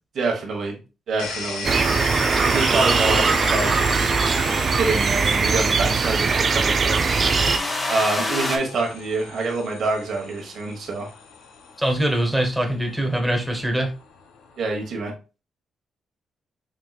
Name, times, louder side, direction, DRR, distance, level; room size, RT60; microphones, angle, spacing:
voice 1, 0.1-0.8 1.1-1.7 2.4-4.1 4.8-7.0 7.9-11.1 14.6-15.1, right 3 dB, 65° right, 1 dB, 1.3 m, -26 dB
sound 1, 1.2-14.9, left 5 dB, 85° left, 0.8 m, -37 dB
sound 2, 1.6-7.6, right 5 dB, 45° right, 0.5 m, -20 dB
sound 3, 3.0-4.0 6.9-8.6, left 2 dB, 30° left, 1.1 m, -28 dB
voice 2, 11.8-13.9, right 1 dB, 5° right, 2 dB, 1.5 m, -23 dB
5.2 x 3.0 x 2.3 m, 0.31 s
cardioid pair, 70°, 0 cm